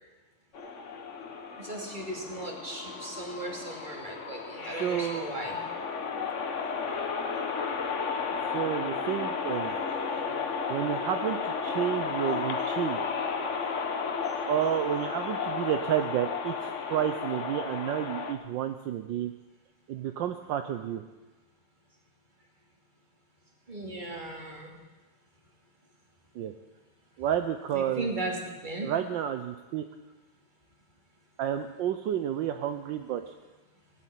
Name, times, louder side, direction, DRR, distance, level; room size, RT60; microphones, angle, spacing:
sound 1, 0.5-18.3, left 5 dB, 45° left, 1.3 m, -33 dB
voice 1, 1.6-5.6 23.7-24.8 27.7-28.4 28.6-28.9, right 2 dB, 25° right, 0 dB, 2.8 m, -37 dB
voice 2, 4.7-5.3 8.5-9.8 10.7-13.0 14.5-19.3 19.9-21.0 26.3-26.5 27.2-28.1 28.8-29.8 31.4-33.3, right 10 dB, 75° right, 8 dB, 1.4 m, -30 dB
18.0 x 8.6 x 9.1 m, 1.2 s
omnidirectional pair, 2.1 m